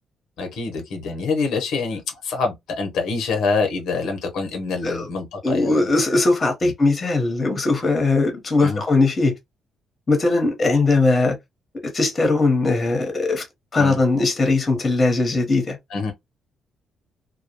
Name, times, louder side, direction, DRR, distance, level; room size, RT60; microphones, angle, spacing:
voice 1, 0.4-5.9 6.6-6.7 8.6-8.8 13.8-14.0 15.9-16.1, left 4 dB, 80° left, 0.7 m, -25 dB
voice 2, 5.4-9.3 10.1-11.4 11.9-13.4 13.7-15.8, left 3 dB, 30° left, 0.9 m, -19 dB
2.2 x 2.1 x 2.8 m
cardioid pair, 90°, 0 cm